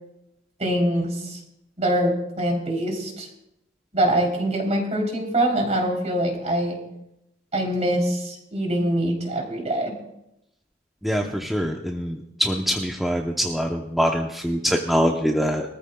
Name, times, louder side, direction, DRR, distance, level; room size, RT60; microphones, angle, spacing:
voice 1, 0.6-1.4 1.8-3.3 3.9-6.8 7.5-9.9, right 1 dB, 35° right, 1 dB, 3.3 m, -24 dB
voice 2, 11.0-15.6, equal, ahead, 1 dB, 0.7 m, -24 dB
22.5 x 14.0 x 2.3 m, 0.85 s
head